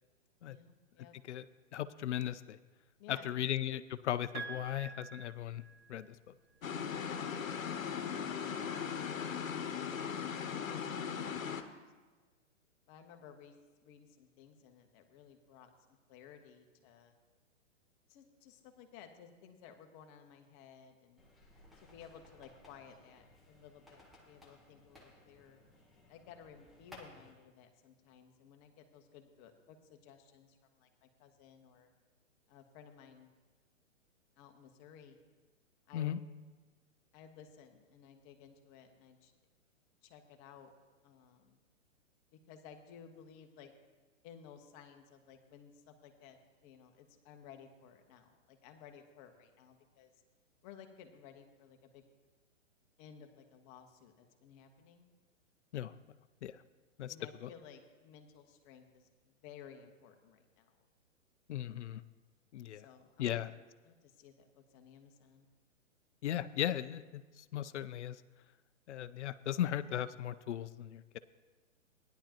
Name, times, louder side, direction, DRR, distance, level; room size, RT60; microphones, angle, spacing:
voice 1, 0.4-1.1 3.0-3.4 6.9-11.0 12.9-15.7 16.1-17.1 18.1-21.2 21.8-25.6 26.1-31.9 32.5-33.3 34.4-35.2 35.9-36.2 37.1-39.3 40.0-40.7 41.0-41.6 42.5-43.7 44.2-50.1 50.6-52.0 53.0-55.1 57.1-60.8 62.7-63.5 63.8-65.5, left 8 dB, 30° left, 5 dB, 1.0 m, -56 dB
voice 2, 1.7-2.6 3.1-5.6 5.9-6.2 35.9-36.2 55.7-55.9 56.4-56.6 57.0-57.1 57.4-57.5 61.5-62.0 62.5-62.9 63.2-63.5 66.2-68.2 68.9-71.2, left 11 dB, 60° left, 14 dB, 0.5 m, -37 dB
Piano, 4.3-6.3 7.6-7.7, right 4 dB, 30° right, 1.2 m, -47 dB
sound 1, 6.6-11.6, left 7 dB, 85° left, 1.0 m, -38 dB
sound 2, 21.2-27.3, left 2 dB, ahead, 0.4 m, -59 dB
16.0 x 10.5 x 2.9 m, 1.3 s
hypercardioid pair, 130°, 39 cm